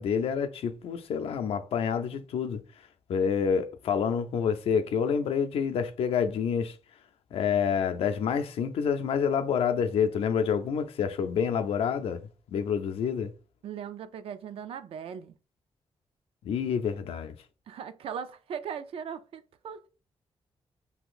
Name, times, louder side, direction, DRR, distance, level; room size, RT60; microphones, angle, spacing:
voice 1, 0.0-2.6 3.1-6.8 7.3-12.2 12.5-13.3 16.4-17.3, left 7 dB, 90° left, 0.5 m, -28 dB
voice 2, 13.6-15.3 17.7-19.9, right 7 dB, 75° right, 0.4 m, -39 dB
2.8 x 2.5 x 3.7 m
wide cardioid pair, 135°, 10 cm